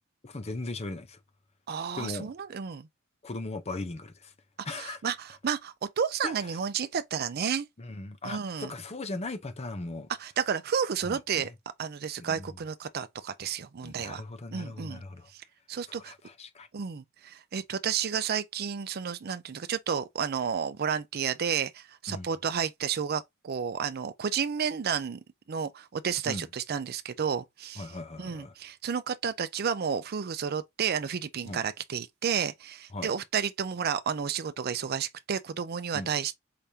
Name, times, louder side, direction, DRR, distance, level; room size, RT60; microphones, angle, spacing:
voice 1, 0.2-1.2 1.9-2.3 3.2-4.3 4.6-5.0 6.2-6.3 7.8-10.1 11.1-11.5 12.2-12.5 13.8-15.3 15.9-16.7 22.1-22.3 26.3-26.5 27.8-28.5 31.5-31.6 32.9-33.1 35.9-36.1, left 2 dB, 30° left, 0.7 m, -38 dB
voice 2, 1.7-2.9 4.7-7.7 8.2-8.7 10.2-11.5 11.8-14.2 14.5-15.0 15.3-16.1 16.7-25.2 25.5-27.9 28.2-36.3, right 7 dB, 50° right, 0.5 m, -31 dB
4.8 x 3.4 x 2.7 m
head